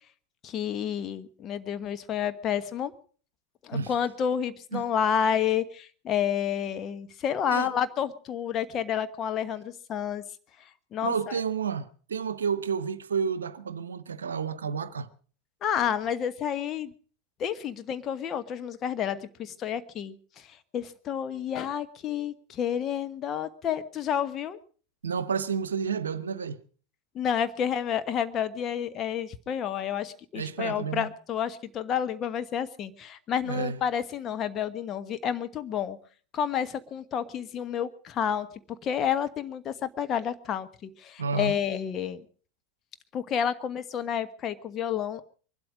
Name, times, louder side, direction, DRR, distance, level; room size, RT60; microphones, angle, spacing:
voice 1, 0.4-2.9 3.6-10.2 10.9-11.4 15.6-16.9 17.4-24.6 27.1-36.0 36.3-38.5 38.8-42.2 43.1-45.2, left 8 dB, 35° left, 1.2 m, -30 dB
voice 2, 11.0-15.1 25.0-26.6 30.3-31.1 33.4-33.8 41.2-41.6, right 6 dB, 75° right, 0.9 m, -30 dB
23.0 x 12.5 x 5.1 m
figure-of-eight pair, 85°, 0 cm